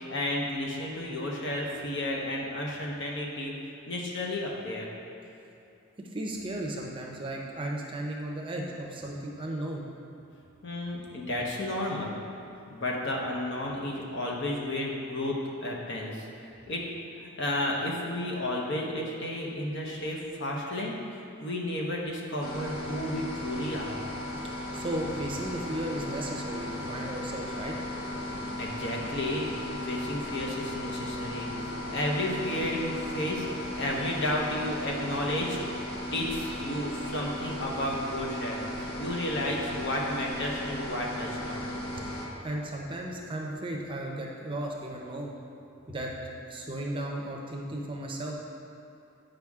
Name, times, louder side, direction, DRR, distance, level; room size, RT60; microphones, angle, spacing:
voice 1, 0.0-3.5 3.9-4.9 10.6-12.1 12.7-16.3 16.7-16.8 17.2-24.0 28.6-35.8 36.1-41.6, left 1 dB, 60° left, -2 dB, 1.0 m, -32 dB
voice 2, 6.1-9.9 24.4-27.8 41.9-42.0 42.4-45.3 45.9-46.1 46.5-48.3, right 1 dB, 25° right, -1 dB, 0.6 m, -35 dB
sound 1, 22.4-42.3, left 1 dB, 90° left, 1.0 m, -36 dB
9.0 x 5.1 x 3.6 m, 2.9 s
head